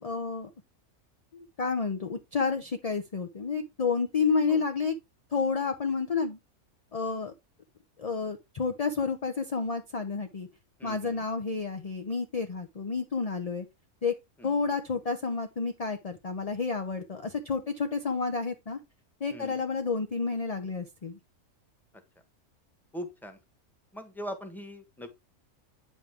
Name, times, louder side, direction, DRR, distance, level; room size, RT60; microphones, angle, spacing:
voice 1, 0.0-0.5 1.3-5.0 5.3-6.4 6.9-7.3 8.0-10.5 10.8-13.6 14.0-14.1 14.4-18.8 19.2-21.2, left 5 dB, 40° left, 0.6 m, -30 dB
voice 2, 10.8-11.2 14.4-14.6 19.3-19.6 22.9-23.4 23.9-25.1, equal, ahead, 1.1 m, -41 dB
8.8 x 5.3 x 3.5 m
omnidirectional pair, 1.5 m